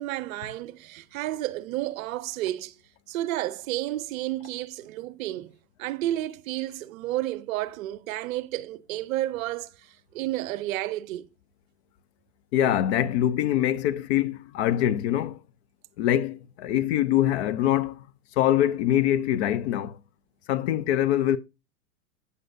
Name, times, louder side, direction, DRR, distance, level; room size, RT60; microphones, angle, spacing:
voice 1, 0.0-2.7 3.1-5.5 5.8-9.7 10.1-11.3, right 15 dB, 60° right, 0.7 m, -31 dB
voice 2, 12.5-15.4 16.0-18.1 18.4-20.0 20.5-21.4, left 12 dB, 45° left, 0.5 m, -24 dB
8.0 x 7.6 x 2.5 m
hypercardioid pair, 115°, 48 cm